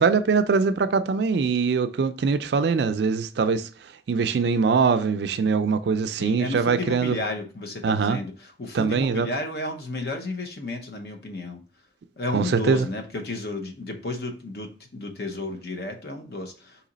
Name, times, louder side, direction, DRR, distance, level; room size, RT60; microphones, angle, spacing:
voice 1, 0.0-3.7 4.1-7.1 7.8-8.2 8.7-9.3 12.3-12.8, right 5 dB, 65° right, 0.4 m, -22 dB
voice 2, 6.1-11.6 12.2-16.9, left 2 dB, 60° left, 0.8 m, -33 dB
4.0 x 2.9 x 3.9 m
head